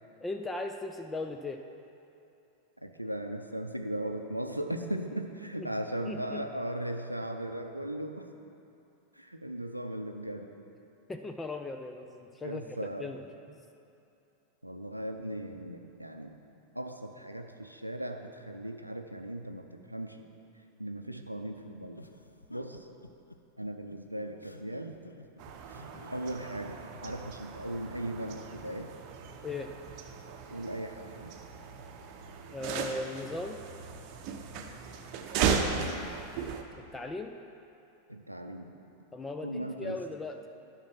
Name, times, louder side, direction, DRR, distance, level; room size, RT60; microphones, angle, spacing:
voice 1, 0.2-1.6 5.6-5.7 6.0-6.4 11.1-13.2 13.5-13.6 29.4-29.7 32.5-33.6 36.9-37.3 39.1-40.4, left 2 dB, 10° left, 5 dB, 0.5 m, -38 dB
voice 2, 2.8-8.3 9.2-10.5 12.4-13.1 14.6-16.3 16.7-20.2 20.8-22.0 22.5-22.9 23.6-24.9 26.1-28.9 30.5-31.4 35.7-36.1 38.1-38.7 39.4-40.0, right 1 dB, 90° right, 5 dB, 0.5 m, -38 dB
sound 1, 21.9-27.3, left 1 dB, 85° left, 0.4 m, -51 dB
sound 2, 25.4-36.6, right 6 dB, 40° right, 0.8 m, -36 dB
11.5 x 5.8 x 6.0 m, 2.8 s
figure-of-eight pair, 90°, 0 cm